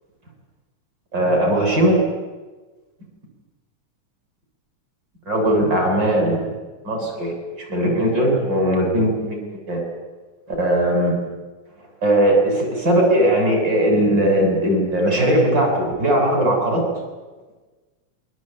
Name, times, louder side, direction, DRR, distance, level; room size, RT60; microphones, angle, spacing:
voice 1, 1.1-2.0 5.3-6.5 6.8-9.8 10.5-11.2 12.0-16.8, right 1 dB, 30° right, 2 dB, 8.2 m, -19 dB
27.0 x 23.0 x 9.1 m, 1.3 s
omnidirectional pair, 3.8 m